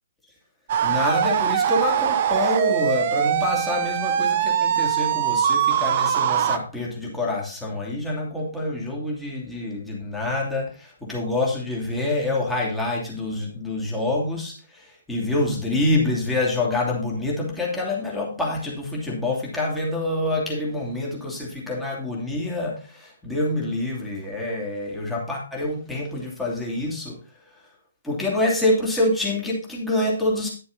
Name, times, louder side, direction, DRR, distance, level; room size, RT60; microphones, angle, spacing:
sound 1, 0.7-6.6, right 9 dB, 45° right, 0.7 m, -22 dB
voice 1, 0.8-27.2 28.0-30.5, left 2 dB, 5° left, -3 dB, 2.9 m, -26 dB
10.5 x 6.9 x 4.0 m, 0.37 s
figure-of-eight pair, 135°, 0 cm